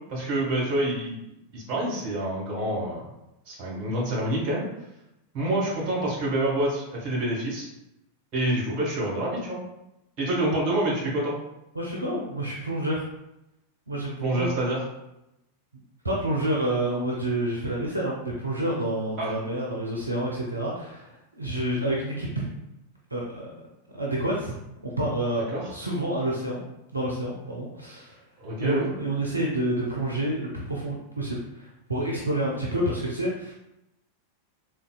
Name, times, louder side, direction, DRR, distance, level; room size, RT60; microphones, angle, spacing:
voice 1, 0.1-1.2 1.5-3.0 3.5-4.7 5.3-7.7 8.3-9.6 10.2-11.3 14.2-14.8 19.2-19.3 25.5-25.7 28.4-28.9, right 1 dB, 40° right, -4 dB, 1.2 m, -27 dB
voice 2, 11.7-13.0 13.9-14.5 16.0-22.5 23.1-23.5 23.9-24.5 24.8-26.6 26.9-28.2 28.6-33.5, right 1 dB, 85° right, -3 dB, 0.4 m, -28 dB
3.7 x 2.2 x 2.3 m, 0.88 s
figure-of-eight pair, 90°, 0 cm